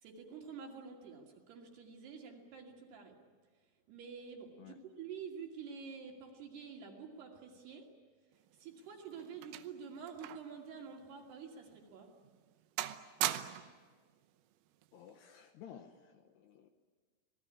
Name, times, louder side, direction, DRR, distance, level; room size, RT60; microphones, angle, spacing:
voice 1, 0.0-3.2 3.9-7.9 8.6-12.1, right 6 dB, 60° right, 1 dB, 4.2 m, -48 dB
sound 1, 8.5-10.6 10.9-11.1 11.7-11.8 12.3-12.5 12.8-13.8 14.8-15.1, right 14 dB, 90° right, 3.7 m, -40 dB
voice 2, 14.9-16.7, left 9 dB, 70° left, 6 dB, 2.7 m, -54 dB
27.5 x 19.0 x 9.8 m, 1.5 s
omnidirectional pair, 5.8 m